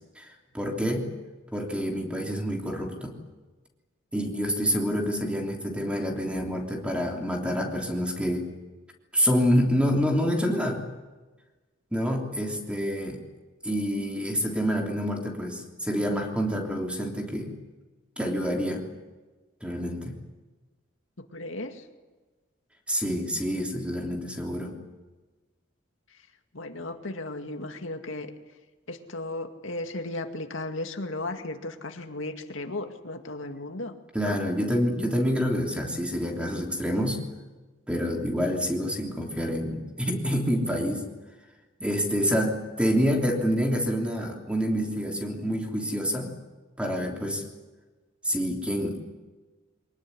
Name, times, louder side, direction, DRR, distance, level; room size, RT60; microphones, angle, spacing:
voice 1, 0.5-1.1 1.5-3.2 4.1-8.5 9.1-10.8 11.9-13.2 13.6-17.5 18.2-18.8 19.6-20.1 22.9-24.8 34.1-37.2 37.9-41.0 41.8-46.3 46.8-47.4 48.2-49.0, equal, 5° right, 1 dB, 3.2 m, -27 dB
voice 2, 21.2-21.9 26.5-28.3 28.9-33.9 34.2-34.4, left 2 dB, 85° left, 5 dB, 2.2 m, -35 dB
24.0 x 19.5 x 9.9 m, 1.2 s
head